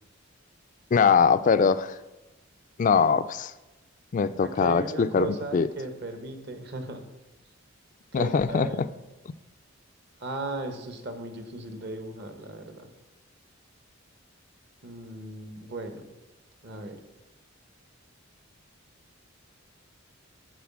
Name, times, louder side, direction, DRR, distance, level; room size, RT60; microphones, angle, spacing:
voice 1, 0.9-2.0 2.8-3.5 4.1-5.7 8.1-8.9, left 6 dB, 40° left, 14 dB, 0.3 m, -22 dB
voice 2, 4.4-7.0 8.1-8.8 10.2-12.9 14.8-16.1 16.6-17.0, right 2 dB, 55° right, 6 dB, 1.0 m, -36 dB
9.3 x 4.0 x 7.3 m, 1.0 s
head